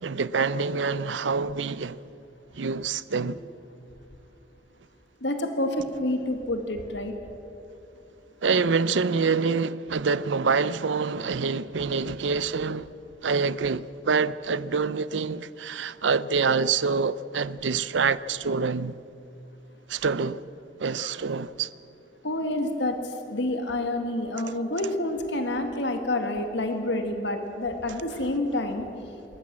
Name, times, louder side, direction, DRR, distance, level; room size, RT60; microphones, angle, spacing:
voice 1, 0.0-2.0 2.5-3.4 8.4-12.9 13.2-19.0 19.9-20.4 20.8-21.7, right 5 dB, 85° right, 0.6 m, -26 dB
voice 2, 5.2-7.1 21.0-21.1 22.2-23.0 23.3-28.9, left 1 dB, 75° left, 1.9 m, -28 dB
26.5 x 14.0 x 7.4 m
head